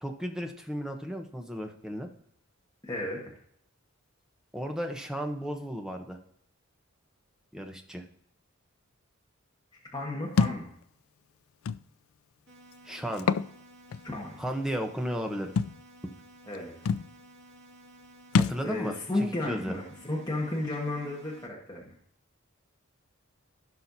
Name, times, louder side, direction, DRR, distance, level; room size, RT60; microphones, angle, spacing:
voice 1, 0.0-2.1 4.5-6.2 7.5-8.0 12.8-13.3 14.4-15.5 18.3-19.8, equal, 5° right, 3 dB, 1.0 m, -34 dB
voice 2, 2.8-3.2 9.9-10.7 14.0-14.4 16.5-17.0 18.6-21.9, left 2 dB, 20° left, -4 dB, 1.6 m, -33 dB
Thump thud, 10.4-10.6 11.7-11.8 13.1-13.5 13.9-14.0 15.6-15.8 16.5-16.6 16.9-17.1 18.3-18.6, left 5 dB, 75° left, 0.4 m, -25 dB
sound 1, 12.5-21.5, right 1 dB, 55° right, 2.4 m, -54 dB
16.0 x 5.7 x 2.7 m, 0.68 s
head